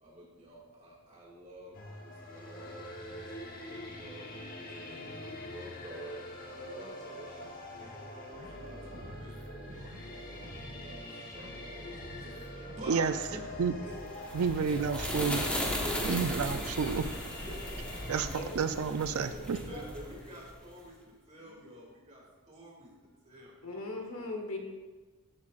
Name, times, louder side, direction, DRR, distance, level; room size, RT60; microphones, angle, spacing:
voice 1, 0.0-4.2 4.6-6.1 6.5-9.9 10.4-10.5 10.9-11.8 12.2-13.4 13.8-13.9 14.4-14.5 15.6-16.2 17.4-17.6 17.8-18.0 18.6-18.7 19.6-20.9 21.3-22.9 23.2-23.5 23.9-24.2, equal, 35° right, -2 dB, 2.3 m, -49 dB
sound 1, 1.7-18.3, left 1 dB, 40° left, 1.2 m, -45 dB
sound 2, 8.3-20.5, equal, 60° right, 2.0 m, -47 dB
sound 3, 14.0-20.6, equal, 5° left, 1.1 m, -37 dB
voice 2, 14.3-15.4 16.1-17.0 18.1-19.6, right 6 dB, 75° right, 10 dB, 0.4 m, -30 dB
voice 3, 18.2-18.7 19.2-19.9 23.6-24.6, left 2 dB, 75° left, 2 dB, 1.4 m, -40 dB
13.5 x 7.7 x 2.5 m, 1.3 s
head